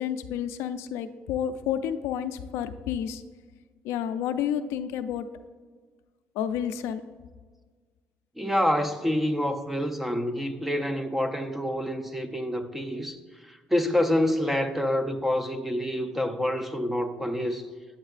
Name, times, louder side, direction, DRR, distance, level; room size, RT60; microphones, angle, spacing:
voice 1, 0.0-3.2 3.8-5.2 6.4-7.0, left 9 dB, 90° left, 0.4 m, -30 dB
voice 2, 8.4-17.6, left 1 dB, 5° right, 0.6 m, -27 dB
8.7 x 7.9 x 2.4 m
cardioid pair, 105°, 4 cm